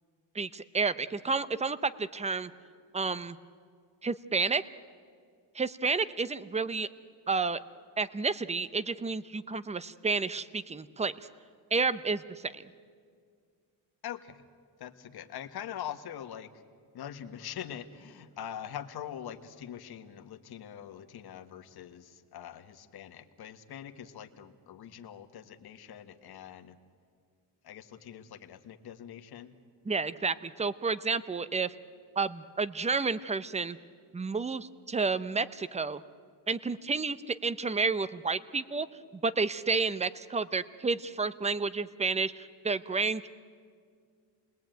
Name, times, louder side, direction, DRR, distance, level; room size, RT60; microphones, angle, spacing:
voice 1, 0.3-2.5 2.9-3.4 4.0-4.6 5.5-6.9 7.3-7.6 8.0-11.1 11.7-12.6 29.9-31.7 32.2-33.8 34.1-36.0 36.5-38.9 39.2-43.3, right 4 dB, 15° right, 15 dB, 0.7 m, -30 dB
voice 2, 14.0-14.4 14.8-16.6 16.9-26.8 27.6-29.5, left 9 dB, 65° left, 7 dB, 1.6 m, -43 dB
28.5 x 20.5 x 9.2 m, 2.1 s
cardioid pair, 135°, 41 cm